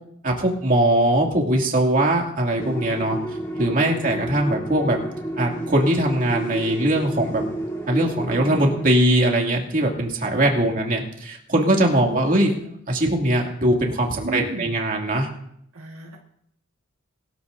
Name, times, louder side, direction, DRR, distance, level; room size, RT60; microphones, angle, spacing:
voice 1, 0.2-3.2 3.6-5.0 5.4-7.4 7.9-15.3, right 1 dB, 40° right, 0 dB, 2.5 m, -21 dB
sound 1, 2.6-8.9, right 1 dB, 15° left, 3.2 m, -30 dB
voice 2, 14.2-14.8 15.7-16.2, right 1 dB, 70° right, 0 dB, 1.8 m, -35 dB
21.0 x 13.5 x 2.7 m, 0.71 s
head